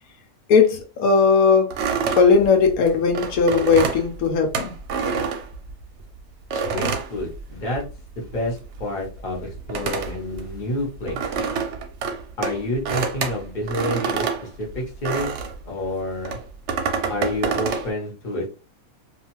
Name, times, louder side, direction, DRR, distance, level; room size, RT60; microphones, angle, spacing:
voice 1, 0.5-1.7 2.1-4.7, left 5 dB, 85° left, 1.0 m, -17 dB
sound 1, 1.7-6.0 6.5-8.0 8.2-15.6 16.2-17.9, right 5 dB, 65° right, 0.8 m, -27 dB
voice 2, 6.5-7.8 8.2-11.2 12.4-15.3 15.6-16.4 17.1-18.5, left 1 dB, 35° left, 0.9 m, -29 dB
2.4 x 2.3 x 3.0 m
omnidirectional pair, 1.5 m